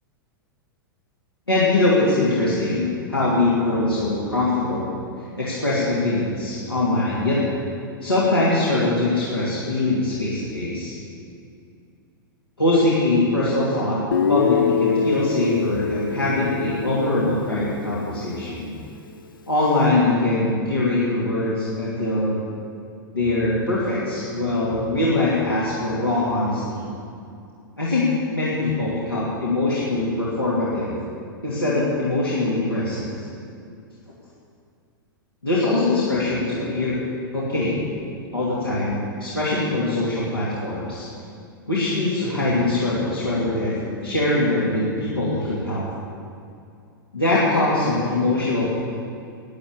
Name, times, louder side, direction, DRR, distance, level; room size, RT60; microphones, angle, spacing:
voice 1, 1.5-4.9 5.4-7.4 8.0-10.9 12.6-14.0 14.3-18.7 19.5-22.4 23.1-26.9 27.8-31.0 31.4-33.3 35.4-37.0 37.3-37.8 38.3-41.1 41.7-45.8 47.1-48.8, left 2 dB, 85° left, -9 dB, 2.8 m, -22 dB
Guitar, 14.1-18.1, left 6 dB, 65° left, 0.7 m, -25 dB
12.0 x 9.4 x 8.3 m, 2.4 s
figure-of-eight pair, 100°, 12 cm